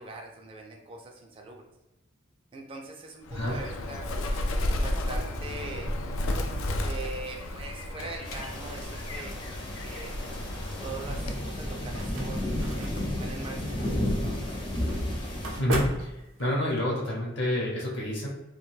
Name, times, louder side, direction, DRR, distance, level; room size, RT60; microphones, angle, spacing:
voice 1, 0.0-1.6 2.5-4.1 4.8-5.9 6.8-9.4 9.8-10.2 10.8-14.7, right 3 dB, 25° right, 1 dB, 0.3 m, -42 dB
Bird, 3.3-11.5, left 1 dB, 85° left, 0.4 m, -32 dB
sound 1, 8.2-15.6, left 1 dB, 25° left, 0.5 m, -32 dB
sound 2, 11.9-16.8, right 1 dB, 80° right, 0.5 m, -37 dB
voice 2, 15.6-16.1 16.4-18.3, left 1 dB, 60° left, -3 dB, 0.8 m, -28 dB
2.4 x 2.2 x 3.1 m, 0.97 s
head